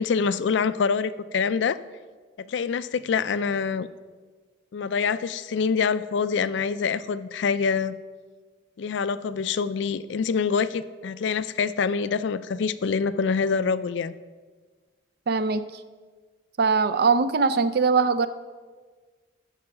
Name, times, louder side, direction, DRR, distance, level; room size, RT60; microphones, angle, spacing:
voice 1, 0.0-1.8 2.4-3.9 4.7-7.9 8.8-14.1, left 5 dB, 65° left, 15 dB, 0.4 m, -25 dB
voice 2, 15.3-15.6 16.6-18.3, right 5 dB, 55° right, 12 dB, 0.4 m, -21 dB
13.0 x 4.8 x 5.7 m, 1.4 s
head